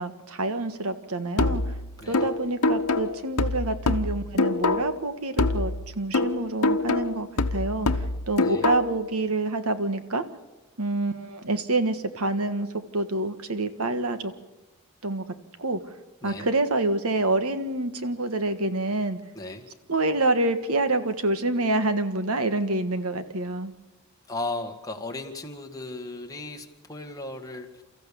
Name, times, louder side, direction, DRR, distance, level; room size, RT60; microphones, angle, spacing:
voice 1, 0.0-1.7 2.1-10.2 10.8-12.7 12.9-14.3 15.0-15.2 15.6-15.8 16.2-19.2 19.9-23.7, right 2 dB, 75° right, 10 dB, 1.5 m, -27 dB
sound 1, 1.4-5.1 5.4-9.1, left 3 dB, 85° left, 1.0 m, -25 dB
voice 2, 2.0-2.3 8.4-8.7 16.2-16.5 19.4-19.6 24.3-27.8, left 2 dB, 15° left, 2 dB, 1.9 m, -36 dB
29.5 x 14.5 x 7.0 m, 1.1 s
head